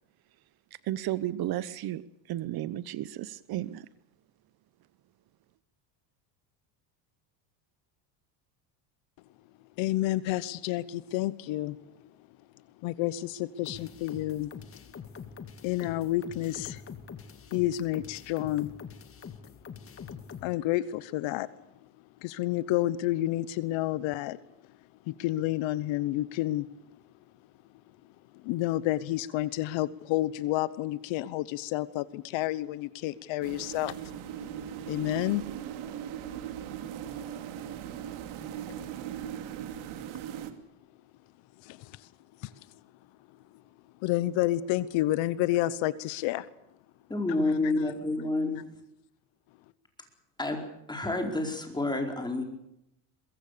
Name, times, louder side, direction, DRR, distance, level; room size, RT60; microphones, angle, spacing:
voice 1, 0.8-2.0 2.3-3.9, right 13 dB, 50° right, 17 dB, 0.9 m, -33 dB
voice 2, 9.8-11.8 12.8-14.5 15.6-16.9 17.5-18.9 20.4-21.5 21.8-21.9 22.2-24.4 25.1-26.7 28.3-33.9 34.9-35.5 41.6-42.1 42.4-42.8 44.0-46.5 47.5-47.9, left 15 dB, 65° left, 17 dB, 1.1 m, -30 dB
sound 1, 13.7-20.5, left 6 dB, 25° left, 2.0 m, -45 dB
sound 2, 33.4-40.5, right 10 dB, 70° right, 2.8 m, -39 dB
voice 3, 47.1-48.6 50.4-50.6 50.9-52.4, left 2 dB, 10° left, 3 dB, 4.6 m, -29 dB
23.0 x 22.5 x 6.8 m, 0.82 s
cardioid pair, 135°, 49 cm